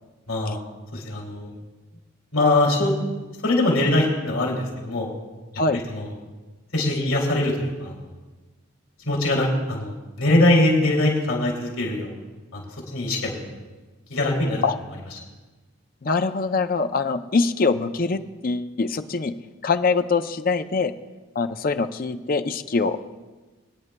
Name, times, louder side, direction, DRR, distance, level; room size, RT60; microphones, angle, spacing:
voice 1, 0.3-0.6 0.9-1.5 2.3-2.9 3.4-5.1 5.9-6.1 6.7-7.9 9.1-12.2 12.5-13.4 14.1-14.6, left 1 dB, 85° left, -1 dB, 2.7 m, -22 dB
voice 2, 16.0-19.3 19.6-20.9 21.4-23.0, left 4 dB, 45° left, 9 dB, 0.5 m, -23 dB
22.5 x 9.7 x 2.2 m, 1.2 s
head